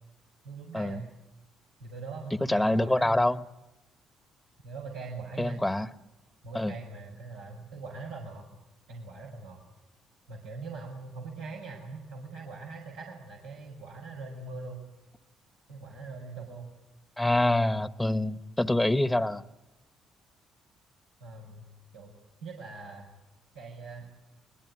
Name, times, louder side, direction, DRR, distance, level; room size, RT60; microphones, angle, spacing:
voice 1, 0.4-1.1 1.8-3.2 4.6-5.6 6.4-8.5 8.9-9.6 10.3-14.8 15.7-16.7 18.1-18.2 21.2-22.1 22.4-23.1 23.5-24.1, right 3 dB, 90° right, -2 dB, 5.0 m, -42 dB
voice 2, 2.5-3.4 5.4-5.9 6.5-6.7 17.2-19.4, left 1 dB, 10° left, 14 dB, 1.2 m, -26 dB
25.0 x 22.0 x 9.6 m, 0.95 s
hypercardioid pair, 55°, 0 cm